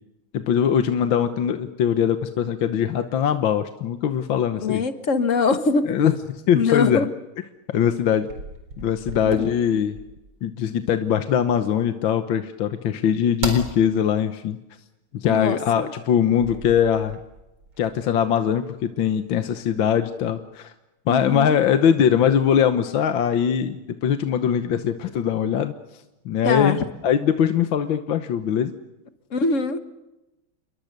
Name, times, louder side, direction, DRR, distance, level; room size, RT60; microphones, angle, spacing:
voice 1, 0.3-4.8 5.9-6.1 6.5-7.1 7.7-8.3 8.8-10.0 10.4-14.6 15.1-17.2 17.8-20.7 21.1-25.7 26.2-26.8 27.0-28.7, left 8 dB, 65° left, 8 dB, 1.7 m, -21 dB
voice 2, 4.5-6.0 6.5-7.1 9.2-9.5 15.3-15.9 21.1-21.6 26.4-26.8 29.3-29.8, left 4 dB, 40° left, 10 dB, 1.5 m, -23 dB
sound 1, 7.8-10.3 13.4-13.7 16.4-19.3 19.8-20.3, right 2 dB, 60° right, 5.0 m, -35 dB
29.5 x 22.5 x 6.7 m, 0.98 s
omnidirectional pair, 2.4 m